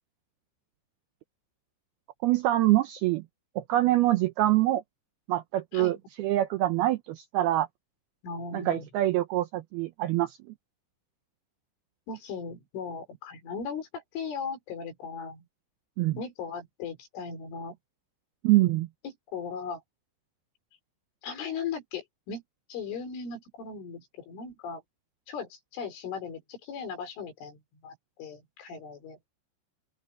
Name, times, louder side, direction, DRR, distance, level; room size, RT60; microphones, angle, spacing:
voice 1, 2.2-3.2 3.6-4.8 5.3-7.7 8.5-10.4 16.0-16.2 18.4-18.9, right 15 dB, 85° right, 2.2 m, -25 dB
voice 2, 8.2-8.9 12.1-15.5 16.2-17.8 19.3-19.8 21.2-22.4 22.7-24.8 25.3-29.2, left 5 dB, 90° left, 7.2 m, -38 dB
open air
omnidirectional pair, 5.4 m